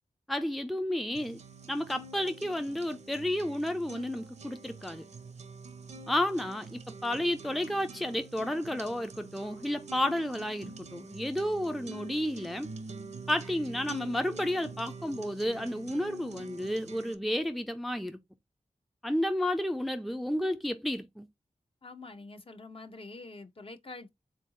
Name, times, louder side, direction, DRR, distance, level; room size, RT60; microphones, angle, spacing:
voice 1, 0.3-1.4 1.7-5.0 6.1-12.7 13.3-18.2 19.0-21.3, left 1 dB, ahead, 0.4 m, -31 dB
sound 1, 1.1-17.1, right 3 dB, 60° right, 0.6 m, -46 dB
voice 2, 21.8-24.1, left 3 dB, 45° left, 0.7 m, -46 dB
3.9 x 2.6 x 3.8 m
wide cardioid pair, 100°, 13 cm